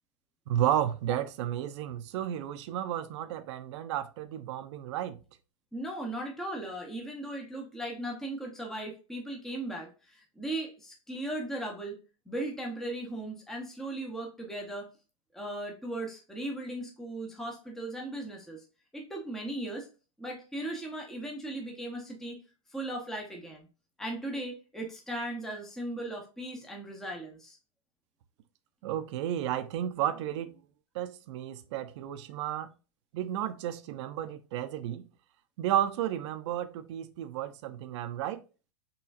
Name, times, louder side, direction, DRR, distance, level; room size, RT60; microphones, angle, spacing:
voice 1, 0.5-5.2 28.8-30.6 30.9-32.7 33.1-35.1 35.6-38.4, right 11 dB, 55° right, 0.6 m, -32 dB
voice 2, 5.7-12.0 12.3-14.9 15.3-18.6 18.9-19.9 20.2-22.4 22.7-23.7 24.0-27.6, right 1 dB, ahead, 0.7 m, -37 dB
5.7 x 3.1 x 2.4 m
supercardioid pair, 145°, 17 cm